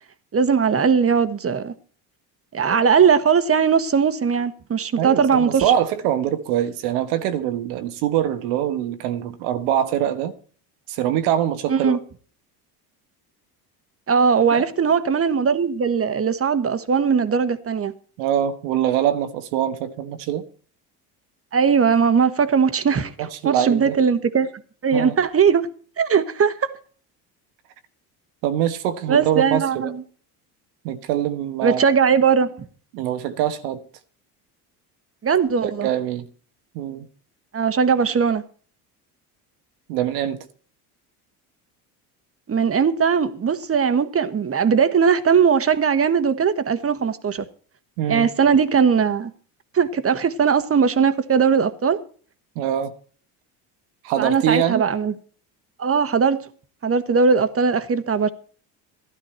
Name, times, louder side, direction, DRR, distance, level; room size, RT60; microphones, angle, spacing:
voice 1, 0.3-1.7 2.5-5.7 11.7-12.0 14.1-17.9 21.5-24.5 24.8-25.7 26.0-26.7 29.1-30.0 31.6-32.6 35.2-35.9 37.5-38.4 42.5-47.4 48.1-49.3 49.7-52.0 54.2-55.1 55.8-56.4 56.8-58.3, right 6 dB, 30° right, 1.4 m, -19 dB
voice 2, 5.0-10.3 10.9-12.0 14.5-14.6 18.2-20.4 23.2-24.0 24.9-25.1 28.4-29.9 30.8-31.9 32.9-33.8 35.6-36.3 36.7-37.1 39.9-40.4 48.0-48.3 52.5-52.9 54.0-54.9, right 10 dB, 80° right, 1.4 m, -23 dB
12.5 x 12.5 x 4.4 m
supercardioid pair, 80°, 46 cm